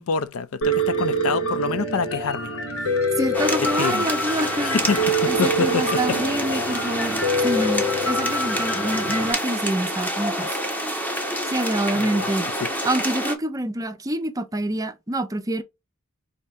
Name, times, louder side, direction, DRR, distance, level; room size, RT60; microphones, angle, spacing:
voice 1, 0.0-2.5 3.6-4.1 4.6-6.2 9.1-9.2 11.9-12.3 12.6-12.7, left 5 dB, 70° left, 0.4 m, -26 dB
Piano, 0.6-9.3, equal, 90° left, 1.2 m, -25 dB
voice 2, 3.2-4.8 5.3-10.5 11.5-12.5 12.8-15.6, right 1 dB, 15° right, 0.5 m, -26 dB
sound 1, 3.3-13.4, equal, 10° left, 0.8 m, -27 dB
5.4 x 2.8 x 3.4 m
head